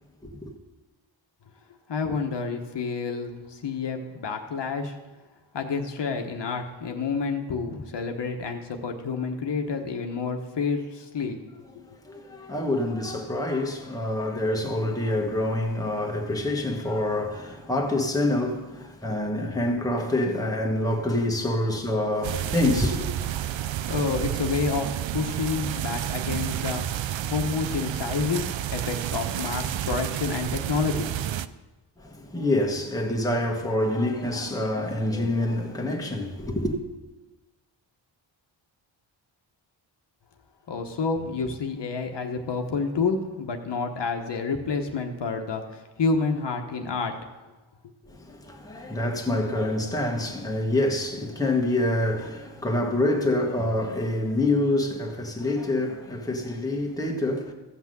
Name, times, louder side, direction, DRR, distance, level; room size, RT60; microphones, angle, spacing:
voice 1, 1.9-5.0 5.5-11.6 23.5-26.8 27.3-31.1 40.7-47.1, left 4 dB, 60° left, 1.2 m, -29 dB
voice 2, 11.8-23.1 32.0-36.8 48.0-57.5, left 1 dB, 10° left, 1.3 m, -26 dB
sound 1, 22.2-31.5, right 11 dB, 75° right, 0.6 m, -30 dB
14.5 x 5.9 x 7.7 m
wide cardioid pair, 150°, 46 cm